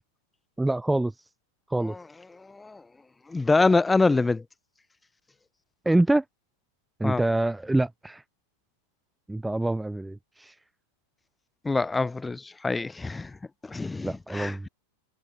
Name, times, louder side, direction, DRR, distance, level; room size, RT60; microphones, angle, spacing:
voice 1, 0.6-1.3 1.7-2.0 5.8-6.2 7.0-8.2 9.3-10.6 14.0-14.7, right 2 dB, 5° right, 1.3 m, -26 dB
voice 2, 2.3-2.8 3.3-4.4 7.0-7.2 11.6-13.4 13.6-14.7, left 3 dB, 10° left, 2.8 m, -25 dB
figure-of-eight pair, 90°, 0 cm